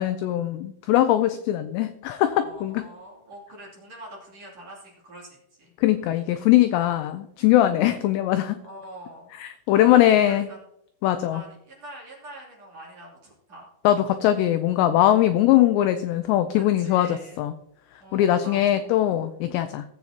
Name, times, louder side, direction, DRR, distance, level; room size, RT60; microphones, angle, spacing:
voice 1, 0.0-2.8 5.8-8.6 9.4-10.5 11.0-11.4 13.8-17.5 18.1-19.9, left 13 dB, 85° left, 10 dB, 2.5 m, -21 dB
voice 2, 2.4-5.7 7.9-8.0 8.6-9.3 9.7-10.6 11.3-13.7 16.8-17.4 18.0-18.9, right 1 dB, 40° right, -4 dB, 3.5 m, -44 dB
19.0 x 7.9 x 2.9 m, 0.76 s
omnidirectional pair, 5.5 m